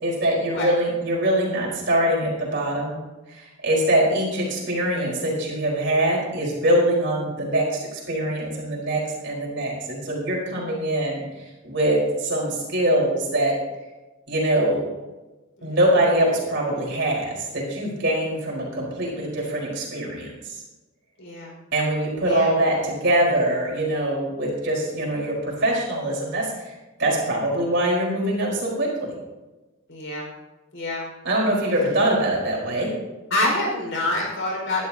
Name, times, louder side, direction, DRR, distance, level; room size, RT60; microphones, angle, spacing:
voice 1, 0.0-3.0 3.3-13.5 14.3-14.9 15.6-20.6 21.7-26.7 27.0-29.1 31.2-32.9, right 1 dB, 55° right, -3 dB, 4.3 m, -23 dB
voice 2, 21.2-21.5 22.2-22.5 29.9-30.3 30.7-31.1 33.3-34.9, left 1 dB, 60° left, -1 dB, 5.1 m, -26 dB
19.5 x 12.0 x 2.8 m, 1.1 s
head